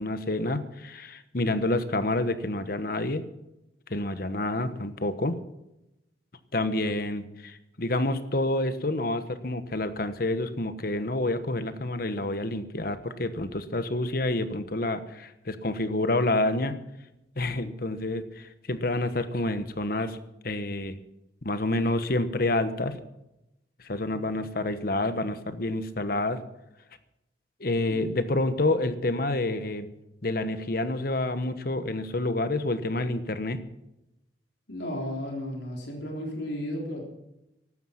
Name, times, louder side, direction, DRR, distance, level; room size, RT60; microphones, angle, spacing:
voice 1, 0.0-3.2 3.9-5.4 6.5-16.7 17.4-20.2 20.4-21.0 21.4-23.0 23.8-26.4 27.6-29.9 30.2-33.6, left 2 dB, 55° left, 11 dB, 1.2 m, -28 dB
voice 2, 34.7-37.0, left 1 dB, 75° left, 0 dB, 3.6 m, -34 dB
15.0 x 12.5 x 5.8 m, 0.90 s
head